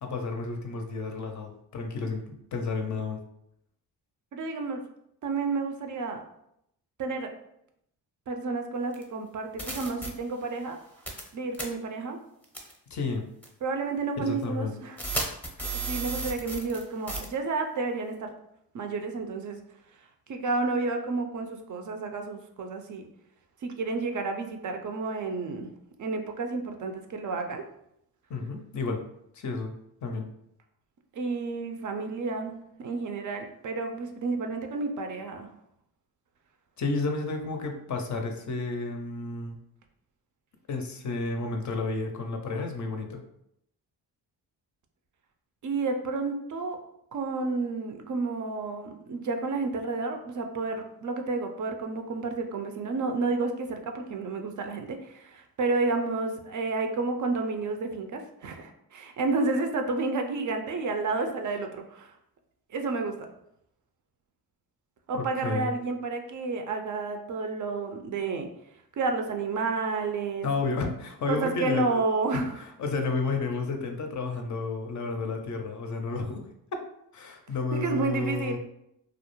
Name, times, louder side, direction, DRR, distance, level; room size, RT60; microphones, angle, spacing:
voice 1, 0.0-3.2 12.9-13.2 14.2-14.8 28.3-29.0 29.3-29.7 30.0-30.3 36.8-39.6 40.7-43.2 65.1-65.7 70.4-71.9 72.3-76.5 77.1-78.6, left 3 dB, 45° left, 4 dB, 0.5 m, -31 dB
voice 2, 4.3-4.8 5.2-6.2 7.0-7.3 8.3-10.8 11.3-12.2 13.6-15.0 15.9-18.3 18.7-19.6 20.3-23.1 23.6-25.7 26.0-27.7 31.1-32.5 32.8-35.5 45.6-46.8 47.1-62.1 62.7-63.1 65.1-68.5 69.0-70.5 71.3-72.5 77.7-78.6, right 3 dB, 50° right, 5 dB, 0.4 m, -30 dB
sound 1, 8.9-9.0 9.6-10.1 11.1-11.3 11.5-11.6 12.5-12.7 13.4-13.5 15.0-16.8 17.1-17.2, right 2 dB, 5° left, 0.6 m, -32 dB
2.3 x 2.0 x 2.9 m, 0.77 s
supercardioid pair, 60°, 42 cm